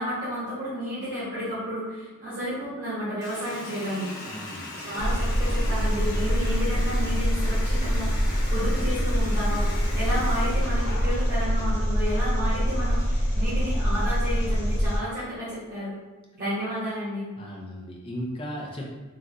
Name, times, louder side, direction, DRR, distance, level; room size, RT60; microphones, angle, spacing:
voice 1, 0.0-4.1 4.8-15.9 16.3-17.3, equal, 40° right, -12 dB, 1.0 m, -32 dB
Water tap faucet, 3.2-11.7, left 2 dB, 85° left, 0.7 m, -39 dB
voice 2, 4.2-4.9 17.4-18.9, equal, 25° left, -1 dB, 0.5 m, -36 dB
Engine, 5.0-15.0, equal, 50° left, 0.8 m, -24 dB
3.1 x 2.4 x 2.5 m, 1.2 s
head